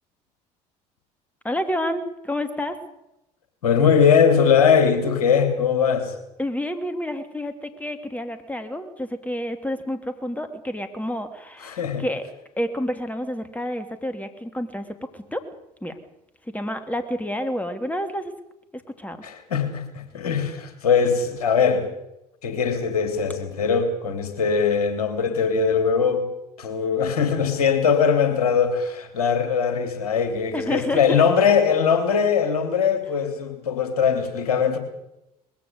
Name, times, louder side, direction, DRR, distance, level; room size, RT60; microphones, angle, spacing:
voice 1, 1.4-2.8 6.4-12.2 12.6-14.8 15.1-15.4 15.8-15.9 16.5-18.3 18.7-19.2 30.5-31.2, left 1 dB, 10° left, 8 dB, 3.0 m, -29 dB
voice 2, 3.6-6.1 11.6-12.0 19.2-21.9 22.4-26.2 26.6-34.8, left 6 dB, 75° left, 8 dB, 3.3 m, -21 dB
21.0 x 16.0 x 8.1 m, 0.86 s
figure-of-eight pair, 60°, 19 cm